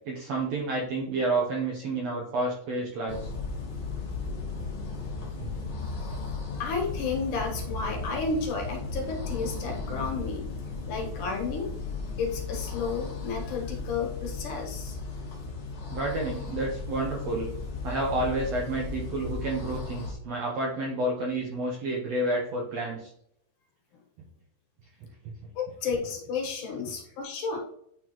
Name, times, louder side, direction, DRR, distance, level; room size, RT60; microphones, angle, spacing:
voice 1, 0.0-3.2 5.2-5.3 15.9-17.5 17.8-23.1, right 2 dB, 70° right, -1 dB, 1.6 m, -30 dB
sound 1, 3.1-20.1, left 4 dB, 50° left, 1.6 m, -36 dB
voice 2, 6.6-10.5 10.9-11.7 12.2-15.0 25.6-27.6, left 4 dB, 70° left, 0 dB, 2.8 m, -32 dB
9.7 x 3.8 x 3.0 m, 0.71 s
omnidirectional pair, 4.0 m